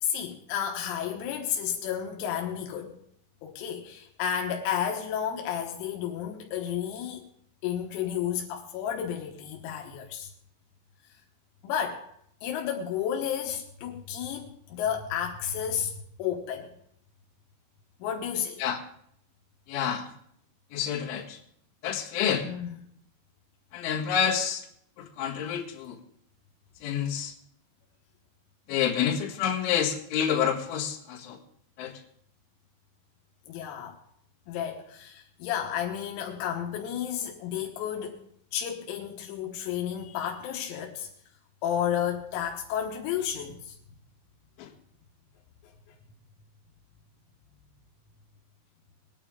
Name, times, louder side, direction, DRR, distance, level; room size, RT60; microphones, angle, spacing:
voice 1, 0.0-3.0 3.4-7.3 7.6-10.3 11.6-12.1 12.4-16.7 18.0-18.6 22.4-22.7 33.5-34.0 34.5-38.2 38.5-41.1 41.6-43.8 45.6-45.7, left 9 dB, 85° left, 4.0 m, -32 dB
voice 2, 19.7-20.1 20.7-21.4 21.8-22.5 23.7-24.7 25.0-26.0 26.8-27.3 28.7-31.4 31.8-31.9 44.6-44.7, left 8 dB, 70° left, 4.0 m, -28 dB
22.5 x 9.8 x 3.7 m
omnidirectional pair, 6.0 m